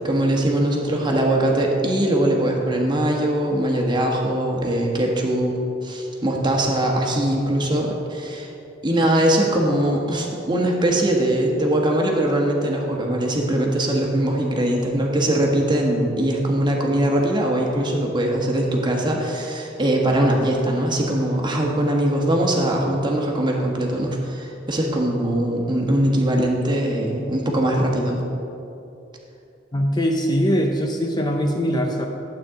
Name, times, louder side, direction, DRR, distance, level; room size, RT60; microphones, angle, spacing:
voice 1, 0.0-8.5 8.8-28.2, right 1 dB, 25° right, 0 dB, 1.2 m, -21 dB
voice 2, 29.7-32.1, equal, 25° left, 2 dB, 0.6 m, -21 dB
12.0 x 8.4 x 3.7 m, 2.8 s
head